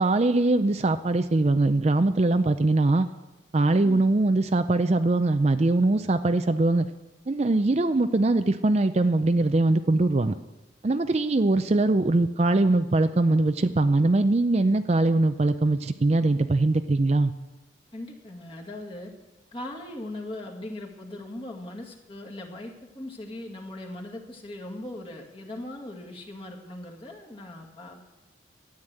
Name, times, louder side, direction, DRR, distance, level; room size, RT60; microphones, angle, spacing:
voice 1, 0.0-3.1 3.5-6.9 7.3-10.3 10.8-17.3, right 2 dB, 35° right, 9 dB, 0.4 m, -22 dB
voice 2, 17.9-19.1 19.5-28.0, left 1 dB, 30° left, 0 dB, 2.0 m, -39 dB
13.0 x 9.7 x 7.7 m, 1.1 s
head